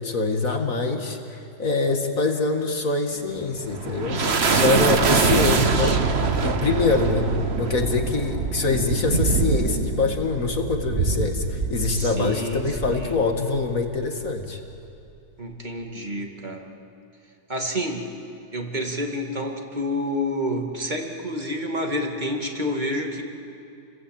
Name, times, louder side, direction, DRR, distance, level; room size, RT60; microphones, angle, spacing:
voice 1, 0.0-4.2 4.5-14.6, left 3 dB, 45° left, 4 dB, 2.2 m, -24 dB
sound 1, 3.3-14.0, right 4 dB, 35° right, 1.3 m, -24 dB
voice 2, 12.0-13.2 15.4-16.7 17.5-18.1 18.5-23.2, equal, 20° right, 2 dB, 2.4 m, -29 dB
30.0 x 21.5 x 8.9 m, 2.6 s
omnidirectional pair, 2.2 m